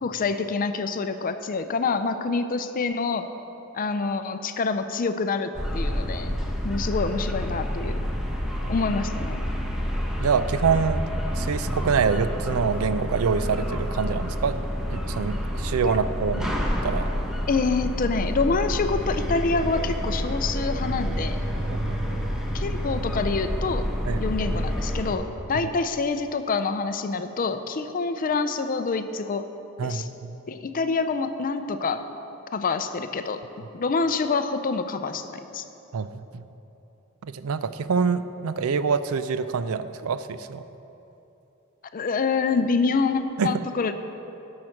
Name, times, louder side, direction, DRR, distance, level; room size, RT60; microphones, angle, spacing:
voice 1, 0.0-3.3 3.7-6.3 6.6-8.0 8.7-9.4 15.8-16.0 17.5-21.4 22.5-23.8 24.2-29.5 29.8-30.1 30.5-32.0 32.5-33.4 33.7-35.6 41.9-43.9, left 4 dB, 40° left, 10 dB, 0.5 m, -26 dB
sound 1, 5.5-25.1, equal, 5° right, 0.9 m, -28 dB
voice 2, 10.2-11.0 11.3-16.5 16.8-17.1 21.6-22.0 24.1-24.3 29.8-30.4 35.9-36.5 37.2-40.6 43.4-43.6, right 5 dB, 80° right, 12 dB, 0.4 m, -26 dB
11.0 x 6.5 x 5.8 m, 2.9 s
head